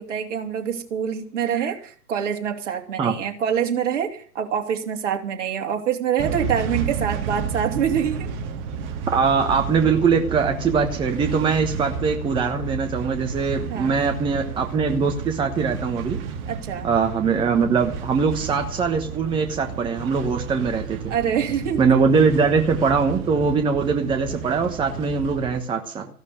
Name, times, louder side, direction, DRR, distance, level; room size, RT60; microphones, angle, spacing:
voice 1, 0.0-8.3 13.7-14.0 16.5-16.9 21.1-21.9, right 8 dB, 50° right, 5 dB, 3.0 m, -25 dB
sound 1, 6.2-25.6, right 5 dB, 25° right, 1.9 m, -32 dB
voice 2, 9.1-16.2 16.8-21.1 21.8-26.1, right 5 dB, 10° right, 5 dB, 1.2 m, -22 dB
15.5 x 12.0 x 6.6 m, 0.42 s
figure-of-eight pair, 125°, 46 cm